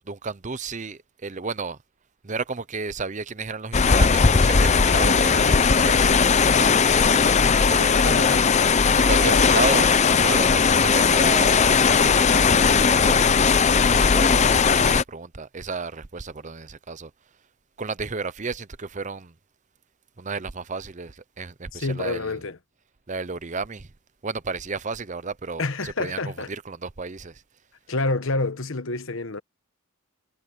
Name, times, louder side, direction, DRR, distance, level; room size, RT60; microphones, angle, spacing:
voice 1, 0.0-1.8 2.2-7.1 7.7-8.5 9.0-9.9 10.2-11.6 11.8-13.2 13.9-17.1 17.8-19.3 20.2-22.4 23.1-23.9 24.2-27.3, right 4 dB, 35° right, 0.7 m, -32 dB
sound 1, 3.7-15.0, left 5 dB, 30° left, 0.5 m, -18 dB
voice 2, 7.9-8.4 9.2-9.7 21.7-22.6 25.6-26.5 27.9-29.4, left 3 dB, 60° left, 1.2 m, -28 dB
head